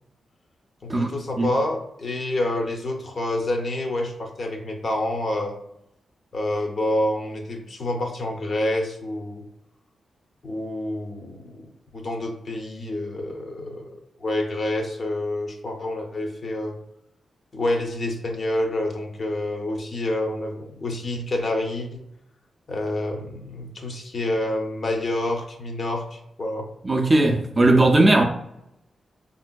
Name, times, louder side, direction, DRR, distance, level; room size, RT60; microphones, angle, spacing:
voice 1, 0.8-5.6 6.3-9.4 10.4-13.9 14.2-16.7 17.5-22.0 22.7-26.7, left 1 dB, 45° left, 0.5 m, -28 dB
voice 2, 26.8-28.2, right 2 dB, 25° right, 0.3 m, -18 dB
3.6 x 2.5 x 2.2 m
wide cardioid pair, 140°, 0 cm